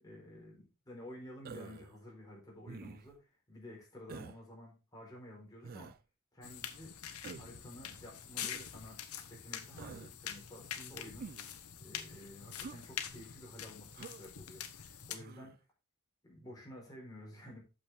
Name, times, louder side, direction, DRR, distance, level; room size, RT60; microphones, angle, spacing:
voice 1, 0.0-5.9 6.3-7.0 7.4-15.6 16.2-17.6, left 1 dB, 15° left, -3 dB, 4.1 m, -52 dB
Human voice, 1.4-1.9 2.7-3.2 4.1-4.4 5.6-6.0 7.2-7.6 8.4-8.7 9.8-10.1 11.2-11.6 12.6-12.8 13.9-14.2 15.2-15.5, right 5 dB, 45° right, 0.4 m, -48 dB
sound 1, 6.4-15.2, left 9 dB, 80° left, 1.1 m, -45 dB
8.6 x 7.2 x 3.5 m, 0.30 s
head